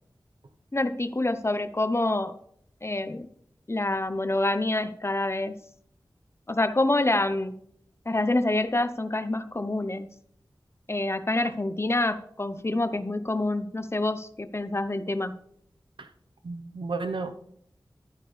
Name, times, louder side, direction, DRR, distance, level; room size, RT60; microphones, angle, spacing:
voice 1, 0.7-2.3 2.8-3.3 3.7-5.6 6.5-7.6 8.1-10.1 10.9-15.4, left 2 dB, 30° left, 11 dB, 0.8 m, -27 dB
voice 2, 16.4-17.5, right 3 dB, 85° right, 8 dB, 1.0 m, -33 dB
12.5 x 9.0 x 3.3 m, 0.67 s
wide cardioid pair, 55°, 8 cm